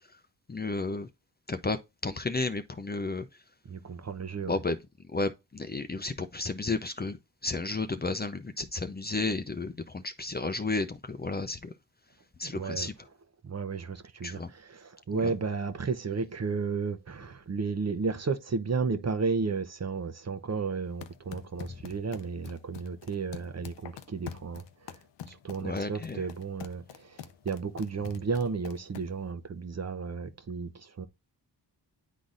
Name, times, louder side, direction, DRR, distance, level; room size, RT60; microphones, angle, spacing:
voice 1, 0.5-1.1 1.5-3.3 4.5-4.8 5.1-11.7 12.4-12.9 14.2-14.5 15.1-15.3 21.7-21.8 25.6-26.3, left 3 dB, 25° left, 0.6 m, -32 dB
voice 2, 3.7-4.6 12.4-12.9 13.4-24.9 25.3-31.1, right 4 dB, 40° right, 0.9 m, -33 dB
sound 1, 20.9-29.3, left 9 dB, 85° left, 0.7 m, -47 dB
10.0 x 3.9 x 2.5 m
cardioid pair, 60°, 42 cm